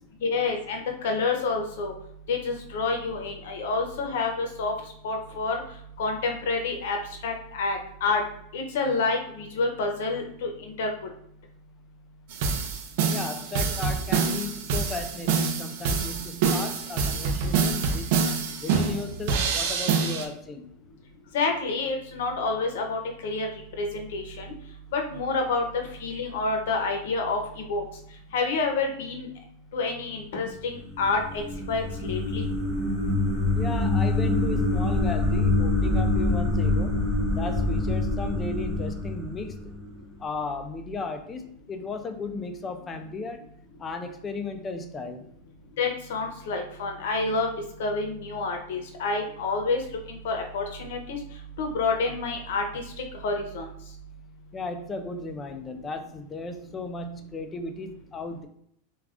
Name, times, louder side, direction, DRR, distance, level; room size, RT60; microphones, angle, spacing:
voice 1, 0.2-1.9 2.3-4.7 5.0-5.6 6.0-7.0 7.2-8.2 8.5-10.9 21.3-23.5 23.8-24.5 24.9-27.8 28.3-29.3 29.7-31.4 31.7-32.4 45.8-47.5 47.8-49.8 50.1-51.2 51.6-52.8 53.2-53.7, left 3 dB, 70° left, 3 dB, 0.7 m, -28 dB
sound 1, 12.3-20.3, right 5 dB, 55° right, 0.4 m, -26 dB
voice 2, 13.1-18.1 18.6-20.7 33.5-37.0 37.3-39.7 40.2-43.4 43.8-45.2 54.5-58.5, left 3 dB, 15° left, 7 dB, 0.3 m, -35 dB
sound 2, 30.7-40.0, left 2 dB, 5° right, 0.8 m, -25 dB
2.4 x 2.3 x 3.4 m, 0.70 s
supercardioid pair, 160°, 0 cm